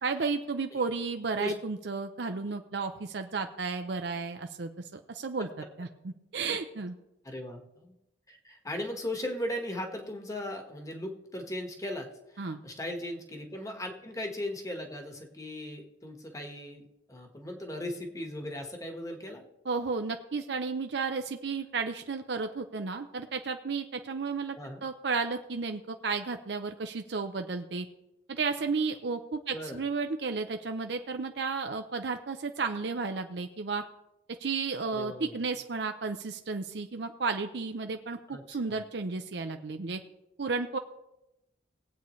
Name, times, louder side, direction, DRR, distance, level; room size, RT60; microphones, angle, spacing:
voice 1, 0.0-5.5 5.8-7.0 12.4-12.6 19.6-27.9 28.3-33.8 34.4-40.0 40.4-40.8, right 4 dB, 70° right, 6 dB, 0.6 m, -33 dB
voice 2, 7.2-7.9 8.3-19.4 24.6-24.8 29.5-29.8 34.9-35.4 38.3-38.8, left 1 dB, 20° left, 3 dB, 1.4 m, -38 dB
20.0 x 8.3 x 3.2 m, 0.93 s
head